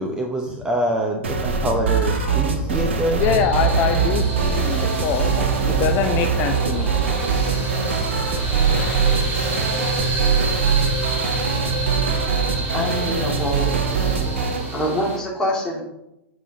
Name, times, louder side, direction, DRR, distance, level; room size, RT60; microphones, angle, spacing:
voice 1, 0.0-3.2, right 1 dB, 10° right, 1 dB, 0.9 m, -25 dB
sound 1, 1.2-14.7, right 5 dB, 70° right, 1.1 m, -23 dB
voice 2, 2.2-2.6 3.2-6.9 7.5-9.8, left 9 dB, 35° left, 7 dB, 0.5 m, -26 dB
sound 2, 3.2-15.2, right 4 dB, 30° right, 2.0 m, -26 dB
voice 3, 12.5-13.7 14.7-15.8, equal, 10° left, -3 dB, 2.4 m, -25 dB
7.7 x 6.0 x 4.0 m, 0.86 s
figure-of-eight pair, 100°, 7 cm